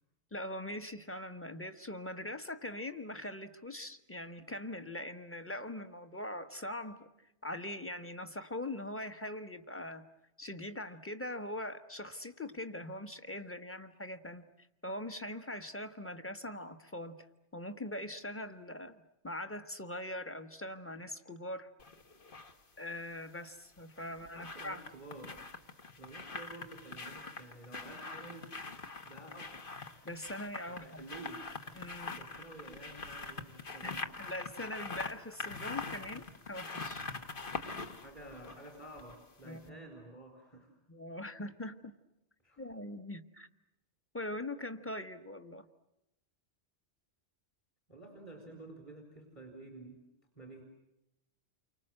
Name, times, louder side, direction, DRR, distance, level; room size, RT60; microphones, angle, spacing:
voice 1, 0.3-7.1 7.4-10.0 10.4-14.5 14.8-17.2 17.5-21.7 22.8-24.8 30.0-31.0 31.7-32.2 33.8-33.9 34.2-37.1 39.4-39.9 40.9-41.9 42.6-43.5 44.1-45.7, left 1 dB, 10° left, 8 dB, 1.2 m, -42 dB
sound 1, 21.8-22.5 23.8-39.3 39.6-39.7, left 3 dB, 50° left, 1.5 m, -44 dB
voice 2, 24.3-25.5 26.0-28.5 29.0-29.7 30.7-31.5 32.2-34.1 37.9-40.7 42.4-42.6 47.9-50.0 50.4-50.6, right 2 dB, 30° left, 2 dB, 3.9 m, -51 dB
29.5 x 24.5 x 7.8 m, 0.89 s
omnidirectional pair, 1.2 m